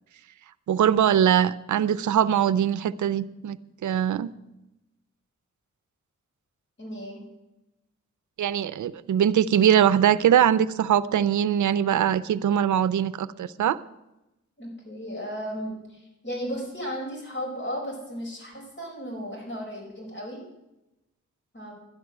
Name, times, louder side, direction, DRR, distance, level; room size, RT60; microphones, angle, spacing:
voice 1, 0.7-4.3 8.4-13.8, right 9 dB, 80° right, 17 dB, 0.6 m, -22 dB
voice 2, 6.8-7.2 14.6-20.4 21.5-21.7, equal, 40° left, -1 dB, 4.9 m, -35 dB
12.0 x 10.5 x 6.2 m, 0.96 s
wide cardioid pair, 100°, 30 cm